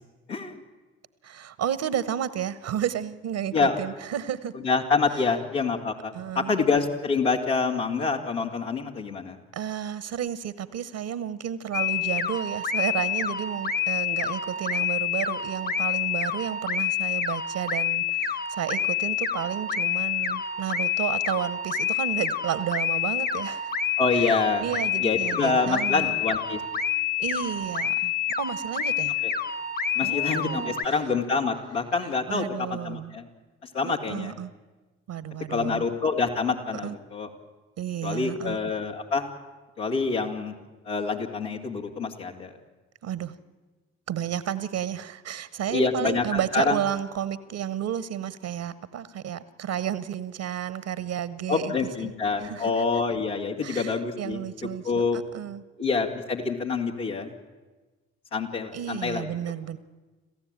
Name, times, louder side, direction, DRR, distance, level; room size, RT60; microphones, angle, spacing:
voice 1, 0.3-0.6 3.5-3.8 4.6-9.4 24.0-24.6 25.0-26.6 29.2-29.3 29.9-33.2 33.6-34.3 35.5-37.3 38.0-39.3 39.8-40.6 40.8-42.5 45.7-46.8 51.5-54.4 54.8-55.2 55.8-57.3 58.3-59.3, left 4 dB, 90° left, -2 dB, 2.4 m, -26 dB
voice 2, 1.2-4.5 6.1-6.5 9.5-23.7 24.1-24.3 24.6-26.2 27.2-29.2 30.0-31.0 32.3-33.1 33.8-34.5 35.1-35.8 36.8-37.0 37.8-38.6 43.0-43.4 44.1-51.7 52.0-52.1 52.4-52.7 53.6-55.6 58.7-59.8, right 9 dB, 65° right, 16 dB, 1.1 m, -32 dB
sound 1, 11.7-30.9, left 8 dB, 30° left, 1.1 m, -28 dB
27.0 x 15.0 x 8.9 m, 1.3 s
hypercardioid pair, 45°, 32 cm